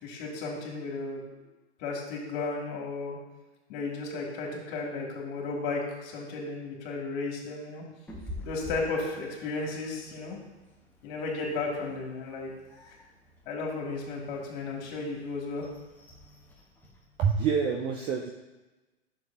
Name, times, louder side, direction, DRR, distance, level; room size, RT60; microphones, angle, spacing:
voice 1, 0.0-1.4 1.8-3.2 3.7-7.9 8.4-10.4 11.0-12.5 12.9-13.0 13.5-15.7, left 3 dB, 45° left, -1 dB, 2.6 m, -34 dB
Meow, 8.1-17.7, left 1 dB, 5° left, 1.7 m, -48 dB
voice 2, 17.2-18.3, right 6 dB, 15° right, 1 dB, 0.3 m, -26 dB
11.0 x 6.7 x 2.9 m, 1.1 s
hypercardioid pair, 115°, 34 cm